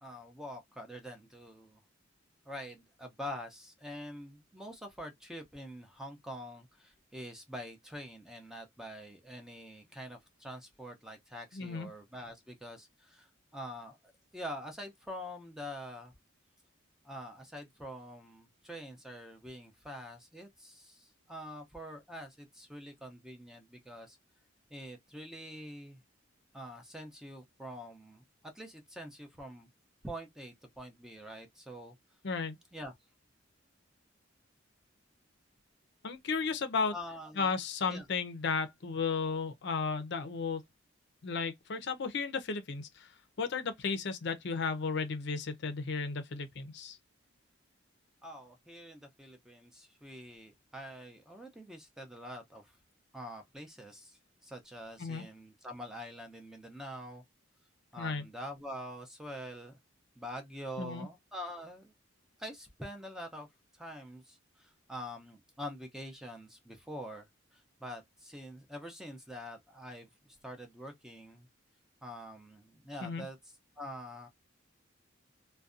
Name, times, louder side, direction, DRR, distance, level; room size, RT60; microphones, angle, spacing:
voice 1, 0.0-1.8 2.5-16.1 17.0-24.2 24.7-26.0 26.5-28.2 28.5-29.7 30.0-32.0 32.7-32.9 36.9-37.5 37.9-38.1 48.2-52.8 53.1-57.2 57.9-59.8 60.2-61.9 62.4-63.5 63.7-71.5 72.0-73.4 73.8-74.3, equal, 5° right, 0.5 m, -45 dB
voice 2, 11.5-11.9 32.2-32.6 36.0-36.9 37.4-40.6 41.2-43.1 43.4-47.0 55.0-55.2 58.0-58.2 60.8-61.1 73.0-73.2, left 5 dB, 60° left, 0.5 m, -34 dB
2.6 x 2.2 x 2.4 m
head